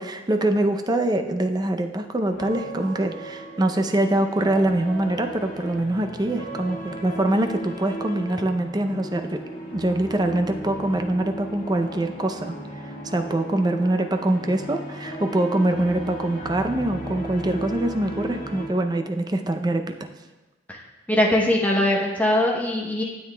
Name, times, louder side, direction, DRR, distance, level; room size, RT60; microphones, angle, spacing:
voice 1, 0.0-9.4 9.7-12.6 12.8-20.1, right 1 dB, 20° right, 6 dB, 0.5 m, -24 dB
sound 1, 2.3-18.7, right 1 dB, 45° left, 1.7 m, -36 dB
voice 2, 21.1-23.0, left 1 dB, 10° left, -2 dB, 0.8 m, -21 dB
12.5 x 7.8 x 2.2 m, 1.1 s
head